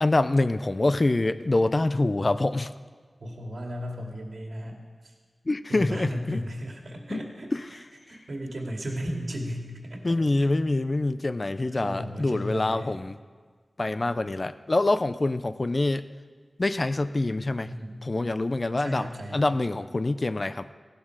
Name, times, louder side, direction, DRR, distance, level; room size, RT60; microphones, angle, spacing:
voice 1, 0.0-2.7 5.5-6.4 7.1-7.2 10.0-13.2 13.8-16.1 16.6-17.7 18.0-20.7, left 2 dB, 40° left, 13 dB, 0.5 m, -25 dB
voice 2, 3.2-5.1 5.7-7.5 8.1-10.5 11.7-13.0 17.6-18.1 18.8-19.5, equal, 70° right, 1 dB, 2.4 m, -35 dB
17.5 x 11.5 x 4.8 m, 1.5 s
wide cardioid pair, 80°, 0 cm